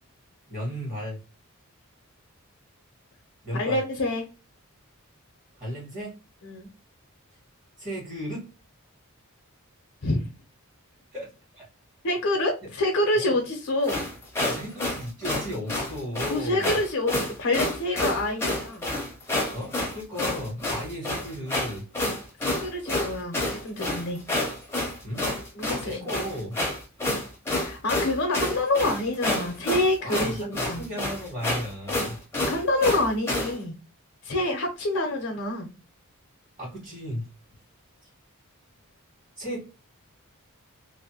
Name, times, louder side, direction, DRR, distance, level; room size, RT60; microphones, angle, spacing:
voice 1, 0.5-1.2 3.4-3.8 5.5-6.2 7.8-8.5 11.1-11.7 12.6-12.7 13.1-13.4 14.4-16.8 19.5-21.9 25.0-25.3 25.8-26.6 30.0-32.2 36.6-37.3 38.0-38.1 39.4-39.7, equal, 30° right, -7 dB, 1.4 m, -35 dB
voice 2, 3.6-4.3 6.4-6.7 10.0-10.3 12.0-14.0 16.3-18.9 22.4-24.2 25.5-26.0 27.5-30.8 32.5-33.7 34.2-35.7, left 1 dB, 60° left, 2 dB, 0.6 m, -27 dB
sound 1, 13.8-33.5, left 1 dB, 10° left, 0.7 m, -29 dB
2.6 x 2.1 x 2.7 m, 0.31 s
head